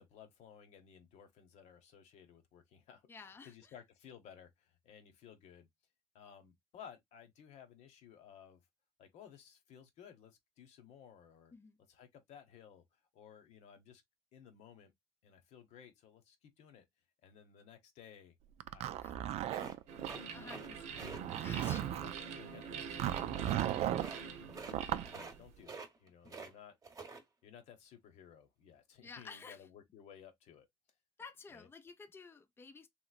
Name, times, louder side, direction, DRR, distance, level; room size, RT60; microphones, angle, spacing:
voice 1, 0.0-5.7 6.1-8.6 9.0-11.5 11.9-14.0 14.3-14.9 15.2-16.8 17.2-18.3 18.7-19.8 20.4-20.8 21.5-24.2 24.5-26.8 27.4-30.7 31.5-31.7, left 8 dB, 75° left, 0.9 m, -57 dB
voice 2, 3.1-3.7 11.5-11.8 19.0-19.2 20.3-21.8 29.0-29.7 31.2-32.9, left 5 dB, 20° left, 0.5 m, -52 dB
Zipper (clothing), 18.6-20.1 20.9-22.2 23.0-24.1 24.7-25.1, right 12 dB, 65° right, 0.4 m, -36 dB
sound 1, 19.5-20.7 20.9-21.2 21.6-21.8 23.3-23.7 24.0-24.2 24.5-24.8 25.0-25.4 25.6-26.5 26.8-27.2, right 4 dB, 30° right, 0.9 m, -47 dB
sound 2, 19.9-25.6, right 6 dB, 80° right, 0.8 m, -46 dB
3.0 x 3.0 x 2.3 m
cardioid pair, 105°, 12 cm